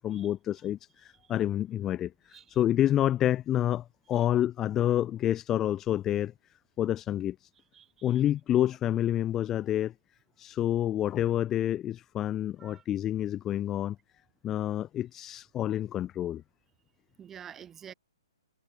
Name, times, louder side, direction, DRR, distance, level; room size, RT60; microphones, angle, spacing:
voice 1, 0.0-6.3 6.8-7.5 8.0-9.9 10.4-14.0 14.4-16.4, left 12 dB, 10° left, 0.6 m, -28 dB
voice 2, 7.7-8.2 12.6-12.8 17.2-17.9, right 9 dB, 10° right, 2.8 m, -48 dB
hypercardioid pair, 170°, 3 cm